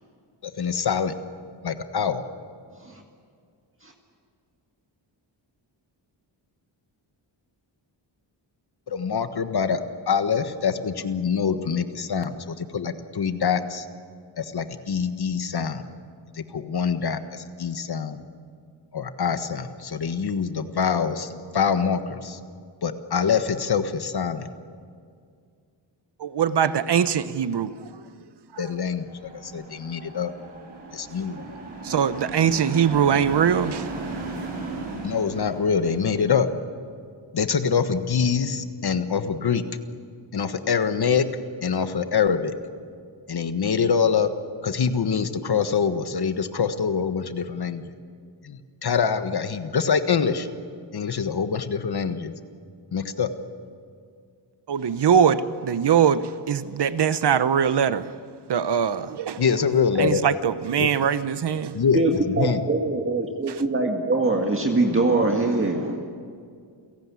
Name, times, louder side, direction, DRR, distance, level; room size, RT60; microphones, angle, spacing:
voice 1, 0.4-1.1 1.6-2.2 8.9-9.8 10.1-13.9 14.4-15.8 16.3-18.2 18.9-22.4 22.8-24.5 28.6-29.1 29.4-30.3 30.9-31.5 35.0-36.5 37.3-39.6 40.3-41.2 41.6-42.5 43.3-44.3 44.6-47.8 48.4-50.5 50.9-52.3 52.9-53.3 59.4-60.2 60.8-60.9 61.7-62.6, left 6 dB, 55° left, 1.4 m, -25 dB
voice 2, 26.2-28.0 31.3-31.4 31.8-33.9 54.7-58.2 58.5-59.4 60.0-61.8 63.5-63.6, right 8 dB, 60° right, 1.0 m, -22 dB
sound 1, 28.9-36.3, right 3 dB, 85° right, 5.8 m, -36 dB
voice 3, 61.9-66.1, right 2 dB, 25° right, 1.9 m, -23 dB
29.5 x 17.5 x 8.5 m
wide cardioid pair, 115°, 47 cm